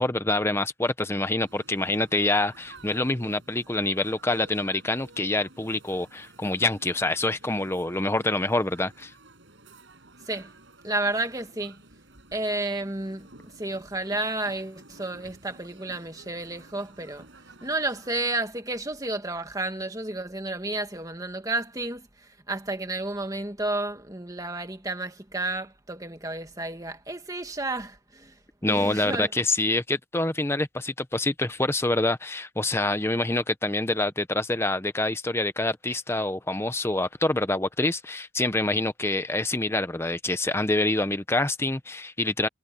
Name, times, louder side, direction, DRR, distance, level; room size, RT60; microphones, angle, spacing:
voice 1, 0.0-9.1 28.6-42.5, left 2 dB, 10° left, 0.8 m, -26 dB
sound 1, 1.4-18.4, right 2 dB, 65° right, 5.6 m, -52 dB
voice 2, 10.8-11.8 12.3-17.3 17.6-28.3 28.7-29.3, right 2 dB, 15° right, 2.0 m, -31 dB
head